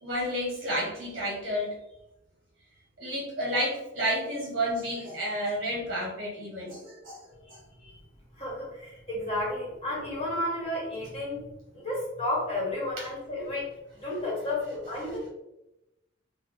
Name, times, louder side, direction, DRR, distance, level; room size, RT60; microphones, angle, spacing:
voice 1, 0.0-1.8 3.0-7.6 13.0-13.1 15.0-15.2, equal, 45° right, -3 dB, 0.8 m, -31 dB
voice 2, 8.3-11.5 11.7-13.7 13.9-15.3, left 1 dB, 30° left, -5 dB, 1.2 m, -32 dB
4.1 x 2.1 x 3.1 m, 0.93 s
head